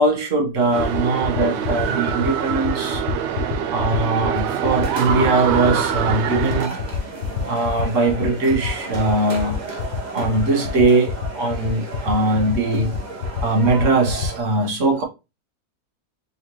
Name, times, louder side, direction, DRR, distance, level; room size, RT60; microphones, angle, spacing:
voice 1, 0.0-3.0 3.7-6.8 7.5-9.6 10.1-12.9 13.2-15.0, right 2 dB, 50° right, 1.5 m, -20 dB
sound 1, 0.5-14.3, left 10 dB, 70° left, 1.4 m, -28 dB
sound 2, 0.6-14.4, right 2 dB, 30° right, 1.1 m, -34 dB
sound 3, 0.7-6.7, right 8 dB, 80° right, 0.6 m, -25 dB
4.0 x 4.0 x 3.1 m
omnidirectional pair, 1.7 m